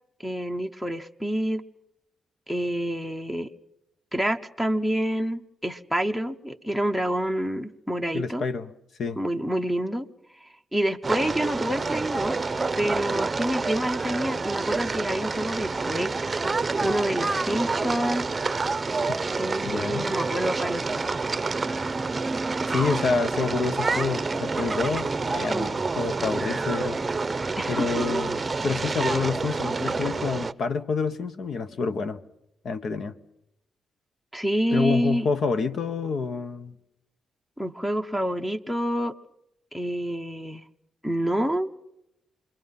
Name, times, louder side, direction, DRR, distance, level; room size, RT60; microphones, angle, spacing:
voice 1, 0.2-1.6 2.5-3.5 4.1-8.5 9.2-10.1 10.4-12.5 12.8-16.1 16.6-18.3 19.4-21.1 27.6-28.0 34.3-35.3 37.6-39.2 39.7-40.6 41.0-41.7, equal, 5° left, 0.9 m, -28 dB
voice 2, 8.1-8.7 9.0-9.2 19.6-20.0 22.7-27.0 27.7-32.2 32.6-33.2 34.7-36.8, left 4 dB, 60° left, 1.2 m, -28 dB
sound 1, 11.0-30.5, right 3 dB, 25° right, 0.7 m, -28 dB
28.0 x 22.0 x 5.6 m
cardioid pair, 115°, 0 cm